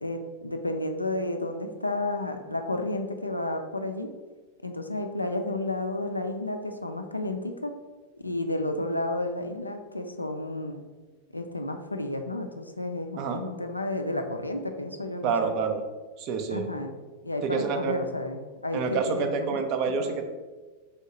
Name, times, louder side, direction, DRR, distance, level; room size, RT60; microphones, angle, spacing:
voice 1, 0.0-4.1 4.6-7.7 8.1-10.8 11.3-15.5 16.5-16.9 17.2-19.6 20.0-20.2, left 2 dB, 85° left, 6 dB, 0.3 m, -32 dB
voice 2, 15.2-15.8 16.2-16.7 17.4-17.9 18.7-20.2, right 5 dB, 40° right, 6 dB, 0.4 m, -27 dB
3.5 x 2.7 x 4.2 m, 1.3 s
figure-of-eight pair, 90°, 0 cm